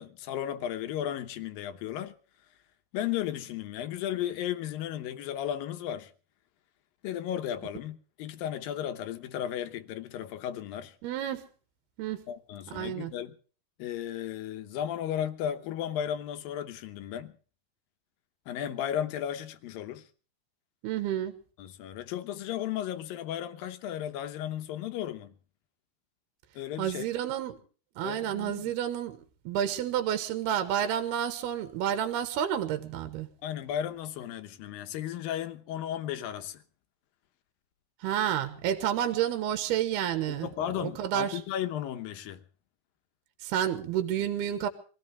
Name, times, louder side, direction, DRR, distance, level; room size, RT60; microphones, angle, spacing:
voice 1, 0.0-2.1 2.9-6.1 7.0-11.0 12.3-13.3 13.8-17.3 18.5-20.1 21.6-25.3 26.6-27.1 28.0-28.6 33.4-36.6 40.3-42.4, left 10 dB, 70° left, 2.6 m, -35 dB
voice 2, 11.0-11.4 12.0-12.2 12.7-13.1 20.8-21.4 26.8-27.6 28.0-33.3 38.0-40.5 40.8-41.4 43.4-44.7, right 10 dB, 80° right, 3.2 m, -30 dB
24.5 x 16.5 x 3.4 m
omnidirectional pair, 4.6 m